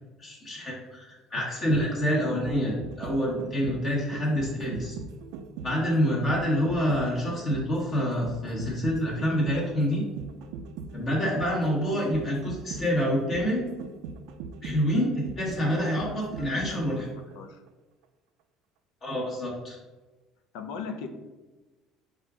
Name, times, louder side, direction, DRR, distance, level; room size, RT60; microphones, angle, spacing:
voice 1, 0.2-5.0 5.6-10.0 10.9-13.6 14.6-17.1 19.0-19.8, equal, 35° left, -4 dB, 1.3 m, -27 dB
sound 1, 1.5-17.3 17.7-17.8, right 6 dB, 80° right, 0.4 m, -40 dB
voice 2, 15.6-17.6 20.5-21.1, left 5 dB, 85° left, 6 dB, 0.6 m, -40 dB
4.2 x 2.4 x 4.8 m, 1.2 s
cardioid pair, 145°, 0 cm